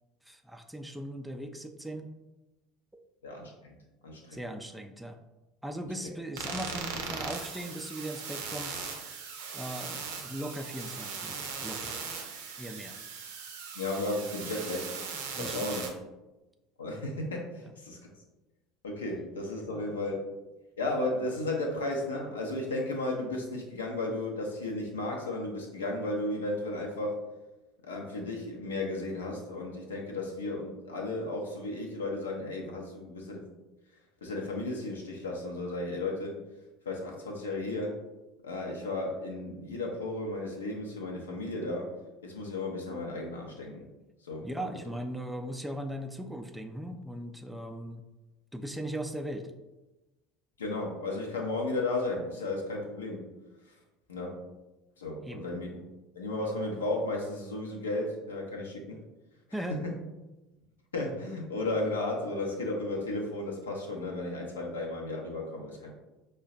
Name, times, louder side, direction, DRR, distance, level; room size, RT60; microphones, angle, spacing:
voice 1, 0.3-2.1 2.9-3.0 4.3-5.2 5.6-8.9 9.5-12.0 12.6-13.0 15.3-15.8 19.7-19.9 44.4-48.0 48.5-49.5 55.2-55.5 59.5-59.8, right 1 dB, 5° right, 5 dB, 0.3 m, -39 dB
voice 2, 3.2-3.8 4.0-4.4 13.7-14.9 15.4-15.8 16.8-18.0 18.8-20.2 20.8-27.2 27.8-33.4 34.2-36.3 36.9-38.0 38.4-41.9 42.2-43.9 44.2-44.5 50.6-53.3 54.1-54.5 55.0-55.8 56.1-59.0 59.7-60.0 60.9-65.9, left 2 dB, 75° left, 0 dB, 0.6 m, -34 dB
sound 1, 6.4-15.9, right 5 dB, 65° right, 0.5 m, -39 dB
5.3 x 2.2 x 2.4 m, 1.1 s
figure-of-eight pair, 70°, 0 cm